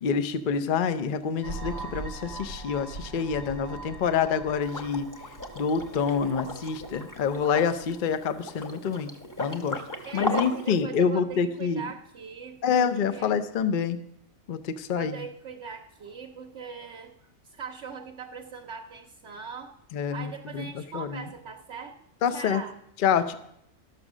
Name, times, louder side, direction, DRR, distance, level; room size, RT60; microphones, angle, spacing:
voice 1, 0.0-5.1 5.6-9.1 9.4-9.8 10.1-11.8 12.6-14.0 14.5-15.2 19.9-21.2 22.2-22.6 23.0-23.3, left 6 dB, 50° left, 11 dB, 0.7 m, -27 dB
sound 1, 1.4-8.1, right 2 dB, 70° left, 3.7 m, -41 dB
Liquid, 4.6-10.8, equal, 15° left, 0.9 m, -36 dB
voice 2, 9.7-13.4 14.9-22.0 22.3-22.8, right 6 dB, 60° right, 2 dB, 0.9 m, -41 dB
13.0 x 6.4 x 6.1 m, 0.76 s
omnidirectional pair, 1.4 m